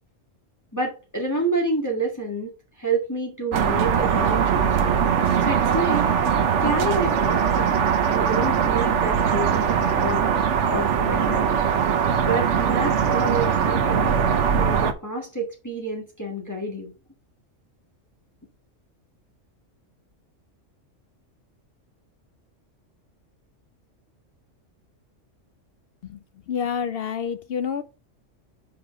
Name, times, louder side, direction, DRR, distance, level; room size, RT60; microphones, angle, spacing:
voice 1, 0.7-2.5 2.8-4.9 5.4-6.1 6.6-7.8 8.1-10.3 10.7-11.5 12.3-14.2 14.6-16.9, right 2 dB, 15° left, 1.7 m, -28 dB
sound 1, 3.5-14.9, right 7 dB, 70° right, 1.2 m, -21 dB
voice 2, 26.0-27.8, left 7 dB, 60° left, 0.7 m, -28 dB
5.8 x 4.7 x 5.0 m
omnidirectional pair, 1.3 m